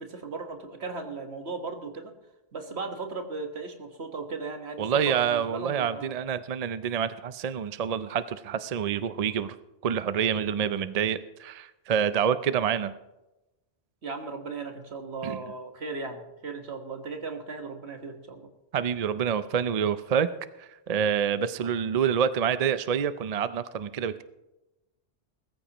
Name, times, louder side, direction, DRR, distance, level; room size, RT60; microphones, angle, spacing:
voice 1, 0.0-2.1 2.5-6.1 14.0-18.5 21.5-21.7, right 4 dB, 70° right, 5 dB, 1.8 m, -37 dB
voice 2, 4.8-9.6 9.8-12.9 15.2-15.4 18.7-20.3 20.6-24.2, right 8 dB, 50° right, 13 dB, 0.5 m, -27 dB
20.5 x 14.0 x 3.0 m, 0.99 s
omnidirectional pair, 1.1 m